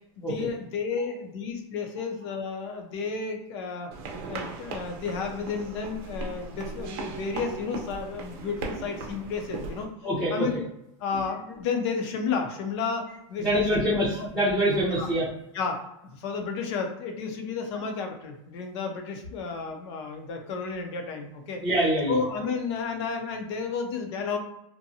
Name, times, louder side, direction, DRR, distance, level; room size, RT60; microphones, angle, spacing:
voice 1, 0.2-3.9 4.3-9.9 10.3-10.6 11.0-13.8 14.2-14.3 14.9-15.1 15.5-15.8 16.2-21.6 22.1-24.4, left 5 dB, 60° left, 4 dB, 0.7 m, -32 dB
sound 1, 3.9-9.8, right 3 dB, 50° right, 0.6 m, -38 dB
voice 2, 10.0-10.5 13.4-15.3 21.6-22.2, equal, ahead, -10 dB, 0.7 m, -25 dB
2.7 x 2.2 x 2.7 m, 0.85 s
supercardioid pair, 155°, 16 cm